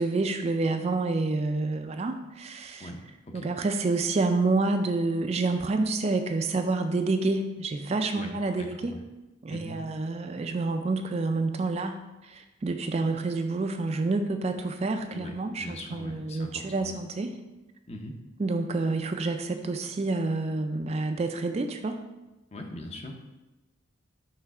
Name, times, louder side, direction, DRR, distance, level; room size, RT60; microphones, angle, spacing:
voice 1, 0.0-2.9 3.3-8.9 9.4-17.3 18.4-22.0, right 3 dB, 30° right, 6 dB, 0.3 m, -28 dB
voice 2, 2.8-3.5 8.1-8.3 8.6-9.0 9.5-9.8 15.1-16.9 17.9-18.2 22.5-23.1, left 1 dB, 30° left, 3 dB, 0.6 m, -41 dB
5.8 x 3.2 x 5.3 m, 1.0 s
head